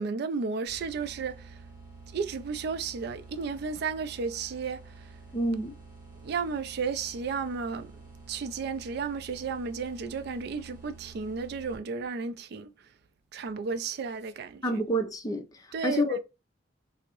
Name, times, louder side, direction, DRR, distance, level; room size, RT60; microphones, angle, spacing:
voice 1, 0.0-1.6 2.1-5.1 6.2-7.9 8.3-12.9 13.3-14.8 15.7-16.2, right 5 dB, 60° right, 0.3 m, -33 dB
sound 1, 0.7-12.1, right 4 dB, 10° right, 1.4 m, -49 dB
voice 2, 5.3-5.7 14.6-16.2, equal, 20° left, 0.5 m, -28 dB
3.4 x 2.0 x 2.9 m
head